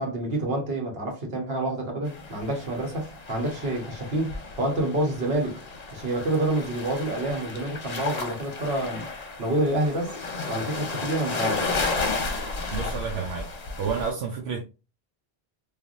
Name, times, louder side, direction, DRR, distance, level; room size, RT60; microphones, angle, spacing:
voice 1, 0.0-5.6 5.9-9.1 9.4-10.2 10.5-11.6, right 1 dB, 65° right, 1.3 m, -28 dB
sound 1, 2.1-14.1, left 3 dB, 45° left, 0.7 m, -33 dB
voice 2, 12.7-13.5 13.8-14.6, right 6 dB, 80° right, 0.9 m, -30 dB
3.3 x 2.4 x 2.5 m
omnidirectional pair, 1.1 m